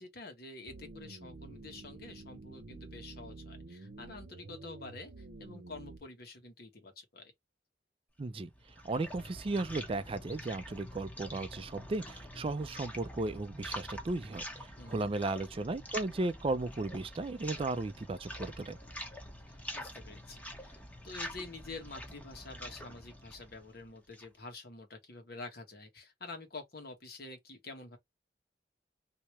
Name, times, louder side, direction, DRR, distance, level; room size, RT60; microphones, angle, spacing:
voice 1, 0.0-7.3 14.8-15.1 19.5-28.0, left 3 dB, 65° left, 1.3 m, -48 dB
sound 1, 0.7-6.0, right 3 dB, 75° right, 0.8 m, -49 dB
voice 2, 8.2-8.5 8.8-18.8, right 2 dB, 35° right, 0.4 m, -35 dB
sound 2, 8.4-24.4, equal, 10° left, 0.9 m, -46 dB
3.2 x 2.8 x 3.0 m
head